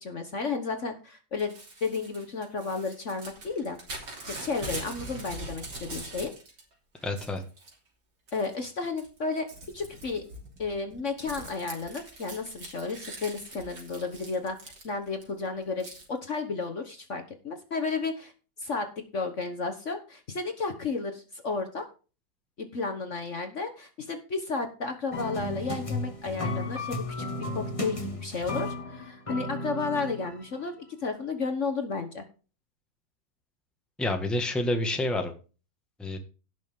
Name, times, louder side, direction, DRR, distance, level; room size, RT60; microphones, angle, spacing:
voice 1, 0.0-3.8 4.2-6.3 8.3-10.2 10.6-14.6 14.8-18.3 18.6-18.9 19.1-21.8 22.6-27.3 27.5-32.2, left 4 dB, 45° left, 6 dB, 1.5 m, -33 dB
Crumpling crinkling / Tearing, 1.4-6.6 7.0-7.7 8.3-8.7 9.0-15.2 15.8-16.1, right 2 dB, 70° right, 3.8 m, -42 dB
voice 2, 7.0-7.4 34.0-35.3 36.0-36.2, left 1 dB, ahead, 4 dB, 1.4 m, -28 dB
sound 1, 25.1-30.7, left 2 dB, 20° left, 1.7 m, -34 dB
17.0 x 6.2 x 3.6 m, 0.35 s
omnidirectional pair, 1.9 m